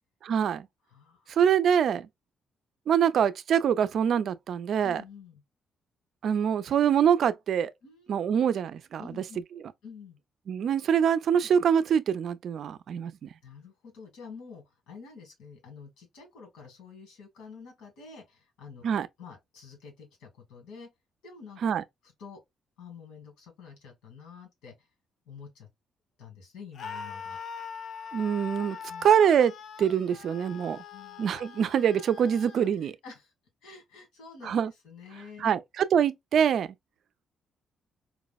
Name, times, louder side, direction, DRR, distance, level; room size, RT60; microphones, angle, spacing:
voice 1, 0.2-0.7 1.3-2.1 2.9-5.0 6.2-7.7 8.1-9.0 10.5-13.3 18.8-19.1 21.6-21.8 28.1-28.8 29.0-30.8 31.2-33.0 34.4-34.7 35.4-35.6 35.9-36.7, right 8 dB, 65° right, 0.4 m, -24 dB
voice 2, 0.9-1.4 4.8-5.4 7.8-8.3 9.0-9.4 9.8-10.2 13.4-18.9 19.2-20.9 21.2-21.6 22.0-22.4 22.8-24.9 25.3-25.7 26.2-27.4 28.9-29.1 30.9-31.2 32.8-33.3 33.6-34.5 34.8-35.6, left 5 dB, 85° left, 1.5 m, -48 dB
Screaming, 26.7-32.7, left 6 dB, 60° left, 0.6 m, -42 dB
4.6 x 2.0 x 2.3 m
cardioid pair, 90°, 0 cm